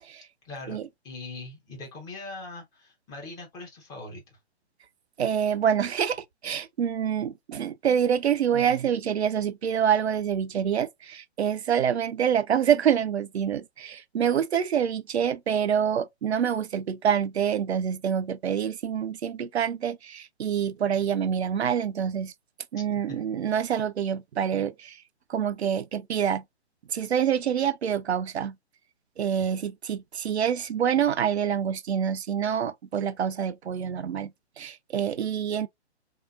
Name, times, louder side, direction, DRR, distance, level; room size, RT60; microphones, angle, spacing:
voice 1, 0.4-4.4 22.8-23.2, left 2 dB, 10° left, 0.7 m, -41 dB
voice 2, 5.2-22.3 22.7-25.0 25.3-26.4 26.9-28.5 29.2-34.3 34.6-35.7, right 8 dB, 70° right, 0.5 m, -26 dB
3.3 x 2.7 x 2.3 m
figure-of-eight pair, 135°, 34 cm